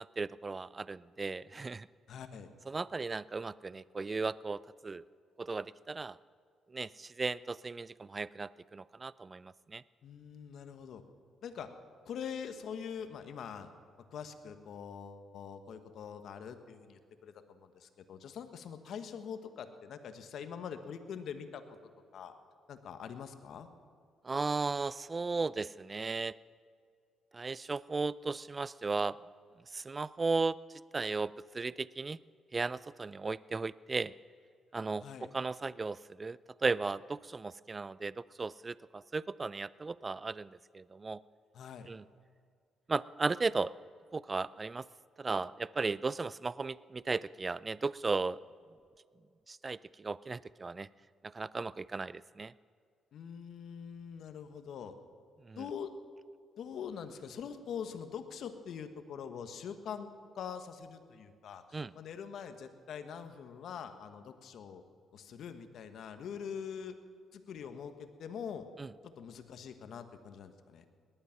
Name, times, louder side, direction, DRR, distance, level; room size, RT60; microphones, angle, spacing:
voice 1, 0.0-1.9 2.7-5.0 5.4-6.2 6.7-9.8 24.2-26.3 27.3-29.2 29.7-30.6 30.9-32.2 32.5-34.1 34.7-41.2 41.9-42.0 42.9-43.7 44.1-44.9 45.2-48.4 49.5-50.9 51.2-52.5 55.5-55.6 61.7-61.9 68.8-68.9, right 4 dB, 30° right, 20 dB, 0.3 m, -36 dB
voice 2, 2.1-2.5 10.0-11.0 11.4-11.7 12.0-13.7 14.1-21.6 22.1-22.3 22.7-23.7 35.0-35.3 41.5-41.9 53.1-54.9 55.6-55.9 56.6-64.8 65.1-66.9 67.3-68.7 69.0-70.8, left 7 dB, 70° left, 8 dB, 1.3 m, -44 dB
18.5 x 11.5 x 5.9 m, 2.2 s
cardioid pair, 90°, 0 cm